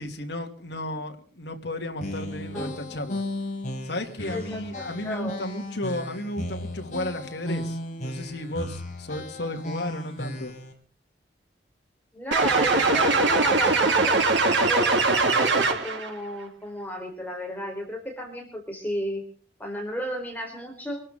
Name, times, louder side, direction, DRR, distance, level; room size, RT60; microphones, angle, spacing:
voice 1, 0.0-3.2 3.8-10.5, left 1 dB, 60° left, 4 dB, 2.9 m, -33 dB
sound 1, 2.0-10.7, left 1 dB, 40° left, 5.6 m, -35 dB
voice 2, 4.3-5.4 12.1-14.2 14.7-19.2 19.6-21.0, equal, 10° left, 1 dB, 4.2 m, -34 dB
sound 2, 12.3-16.1, right 3 dB, 70° right, 3.4 m, -21 dB
26.5 x 13.0 x 3.8 m, 0.43 s
head